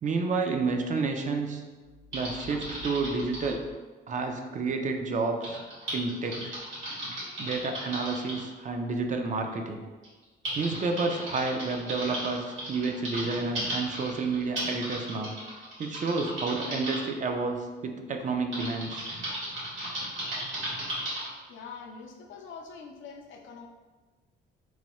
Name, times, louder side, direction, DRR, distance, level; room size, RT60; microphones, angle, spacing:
voice 1, 0.0-1.6 2.1-3.6 4.1-5.6 5.9-6.5 7.4-9.8 10.5-15.4 15.8-19.1, right 3 dB, 40° right, 4 dB, 0.4 m, -30 dB
Typing, 2.1-3.5 5.4-8.4 9.5-9.6 10.0-17.0 18.5-21.3, right 1 dB, 75° right, 1.5 m, -35 dB
voice 2, 21.5-23.7, left 5 dB, 75° left, 2 dB, 0.5 m, -44 dB
3.0 x 2.2 x 2.9 m, 1.3 s
cardioid pair, 90°, 20 cm